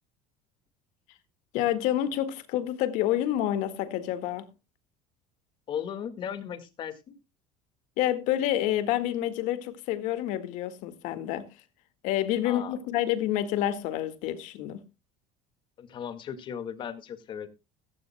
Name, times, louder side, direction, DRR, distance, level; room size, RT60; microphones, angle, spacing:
voice 1, 1.5-4.5 8.0-11.5 12.0-14.8, left 12 dB, 65° left, 1.9 m, -28 dB
voice 2, 5.7-7.1 12.4-12.8 15.8-17.5, left 8 dB, 35° left, 1.9 m, -36 dB
15.0 x 15.0 x 2.2 m
cardioid pair, 155°, 14 cm